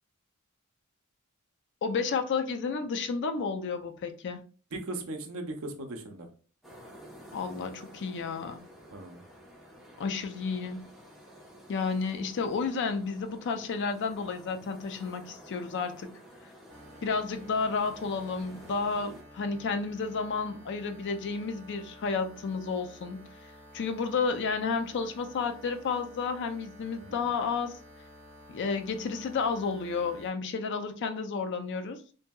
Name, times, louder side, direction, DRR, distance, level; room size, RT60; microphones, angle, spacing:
voice 1, 1.8-4.4 7.3-8.6 10.0-10.8 11.7-16.1 17.0-23.3 23.7-27.8 28.5-32.0, left 5 dB, 55° left, 0.4 m, -31 dB
voice 2, 4.7-6.3 8.9-9.2 27.0-27.3, right 2 dB, 70° right, 0.6 m, -38 dB
sound 1, 6.6-19.2, equal, ahead, 0.7 m, -51 dB
sound 2, 16.7-30.3, equal, 30° right, 1.1 m, -52 dB
2.7 x 2.6 x 2.2 m
head